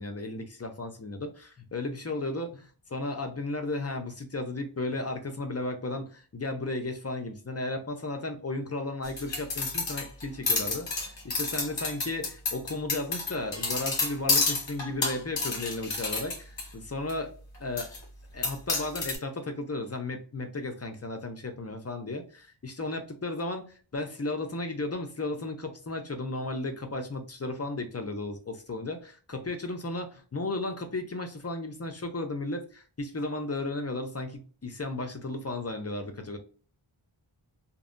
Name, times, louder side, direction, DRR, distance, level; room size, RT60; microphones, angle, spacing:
voice 1, 0.0-17.3 17.6-17.9 18.3-36.4, left 2 dB, 30° left, 5 dB, 0.6 m, -34 dB
sound 1, 9.0-16.7 17.1-17.2 17.8-18.0 18.4-19.2, left 3 dB, 60° left, 1.0 m, -30 dB
2.6 x 2.1 x 2.4 m, 0.38 s
wide cardioid pair, 50°, 49 cm